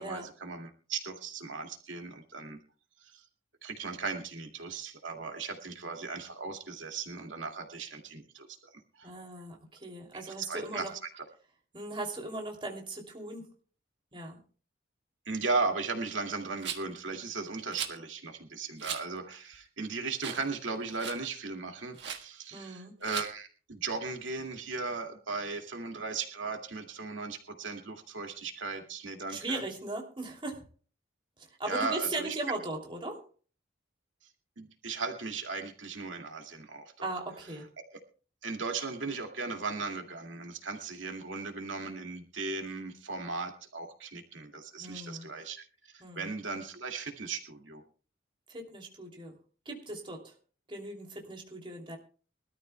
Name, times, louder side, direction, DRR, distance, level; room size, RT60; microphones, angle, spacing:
voice 1, 0.0-2.6 3.0-3.2 3.6-9.1 10.1-10.9 15.3-29.6 31.7-32.4 34.6-37.1 38.4-47.8, right 4 dB, 90° right, 4 dB, 2.3 m, -37 dB
voice 2, 9.0-10.9 11.7-13.5 14.1-14.4 22.5-23.0 29.3-30.7 31.4-33.2 37.0-37.6 44.8-45.3 46.0-46.3 48.5-49.4 49.6-50.3 50.7-52.0, right 2 dB, 25° right, 1 dB, 2.9 m, -38 dB
Rattle, 16.6-17.0 17.7-18.0 18.8-19.0 19.5-19.6 20.2-20.5 20.7-21.2 22.0-22.2 23.0-23.3, right 8 dB, 65° right, 1.5 m, -37 dB
23.5 x 13.5 x 2.3 m, 0.39 s
head